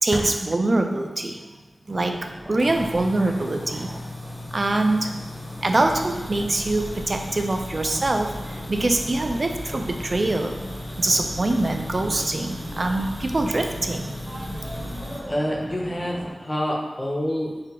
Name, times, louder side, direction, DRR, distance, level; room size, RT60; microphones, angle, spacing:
voice 1, 0.0-1.5 1.9-3.9 4.5-5.2 5.6-10.6 11.0-14.6, right 2 dB, 45° right, 5 dB, 0.4 m, -24 dB
sound 1, 1.9-16.3, equal, 20° right, 0.7 m, -38 dB
sound 2, 2.6-15.2, left 1 dB, 55° left, 1.0 m, -37 dB
voice 2, 2.6-3.3 3.7-4.0 12.1-12.3 15.3-17.6, equal, 25° left, -1 dB, 0.7 m, -29 dB
3.9 x 2.4 x 4.3 m, 1.2 s
wide cardioid pair, 100°, 0 cm